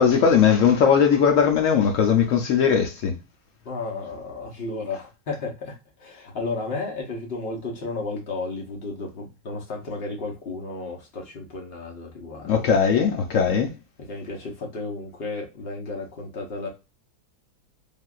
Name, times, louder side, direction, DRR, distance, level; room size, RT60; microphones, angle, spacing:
voice 1, 0.0-3.2 12.4-13.7, left 7 dB, 80° left, 0.7 m, -19 dB
voice 2, 3.6-12.5 14.1-16.7, left 3 dB, 50° left, 0.8 m, -33 dB
3.5 x 2.5 x 2.3 m
omnidirectional pair, 1.9 m